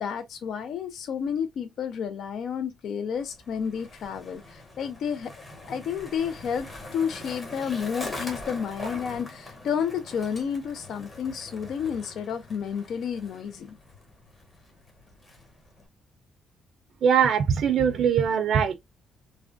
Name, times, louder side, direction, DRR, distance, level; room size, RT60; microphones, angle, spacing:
voice 1, 0.0-5.3 5.7-6.7 6.9-13.8, left 7 dB, 70° left, 0.3 m, -31 dB
Skateboard, 3.1-15.9, left 2 dB, 30° left, 1.3 m, -42 dB
voice 2, 17.0-18.7, right 7 dB, 65° right, 0.4 m, -21 dB
3.4 x 2.1 x 2.4 m
cardioid pair, 90°, 0 cm